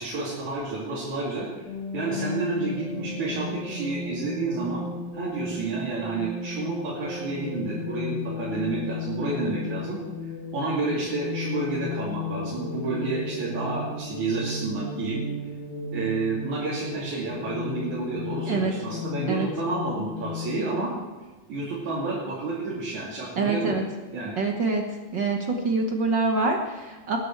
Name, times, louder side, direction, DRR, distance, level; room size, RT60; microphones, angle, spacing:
voice 1, 0.0-1.6 1.9-4.8 5.1-15.2 15.9-20.9 21.5-23.9 24.1-24.4, right 3 dB, 75° right, -7 dB, 4.1 m, -30 dB
sound 1, 1.7-20.8, left 3 dB, 45° left, 1.7 m, -34 dB
voice 2, 23.4-23.8 24.4-24.8 25.1-27.2, right 3 dB, 55° right, 3 dB, 1.4 m, -25 dB
19.5 x 10.5 x 4.6 m, 1.2 s
omnidirectional pair, 3.4 m